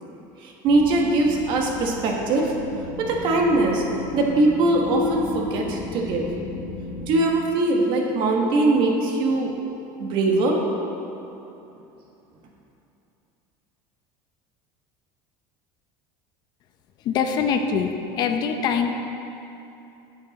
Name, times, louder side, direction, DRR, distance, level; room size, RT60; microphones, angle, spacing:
voice 1, 0.4-2.5 3.0-3.8 4.1-6.3 7.1-9.5 10.0-10.6, right 2 dB, 50° right, 0 dB, 1.3 m, -21 dB
sound 1, 0.6-7.1, left 2 dB, 10° left, 2.4 m, -36 dB
voice 2, 17.0-18.9, left 6 dB, 40° left, 6 dB, 0.6 m, -23 dB
10.0 x 7.7 x 4.1 m, 2.9 s
cardioid pair, 155°, 10 cm